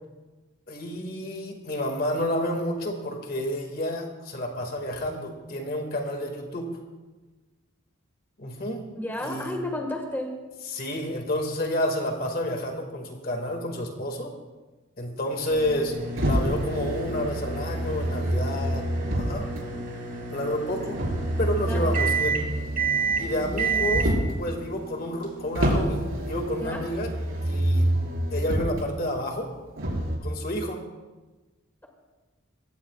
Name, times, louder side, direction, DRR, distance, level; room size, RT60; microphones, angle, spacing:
voice 1, 0.7-6.7 8.4-8.9 9.2-9.5 10.6-14.3 15.0-18.9 19.1-19.5 20.3-21.0 21.4-22.4 23.2-24.1 24.4-27.1 27.4-27.9 28.3-29.5 30.2-30.8, left 1 dB, 45° left, 3 dB, 2.1 m, -30 dB
voice 2, 9.0-10.3 21.7-21.9 26.6-26.9, left 1 dB, 10° left, 1 dB, 1.7 m, -32 dB
sound 1, 15.5-25.8, right 5 dB, 40° right, 3.2 m, -31 dB
Motor vehicle (road), 16.2-19.6 20.9-24.4 25.5-28.8 29.8-30.2, right 1 dB, 80° right, 4.8 m, -27 dB
23.5 x 16.5 x 2.4 m, 1.2 s
head